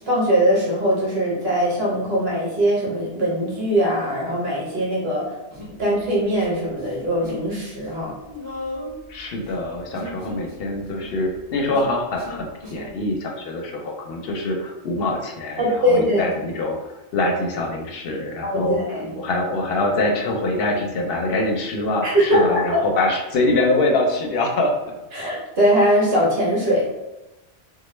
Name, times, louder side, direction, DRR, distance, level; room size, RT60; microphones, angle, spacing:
voice 1, 0.0-5.2 5.8-8.1 15.6-16.2 18.4-18.6 18.9-19.2 22.0-22.8 25.1-26.9, equal, 65° right, -4 dB, 1.0 m, -21 dB
Human voice, 5.5-6.5 6.7-7.5 7.7-12.9, left 1 dB, 25° right, 1.3 m, -37 dB
voice 2, 9.1-16.8 17.1-18.8 19.2-24.7, left 2 dB, 65° left, 1 dB, 0.7 m, -24 dB
3.0 x 2.1 x 3.1 m, 1.0 s
omnidirectional pair, 1.2 m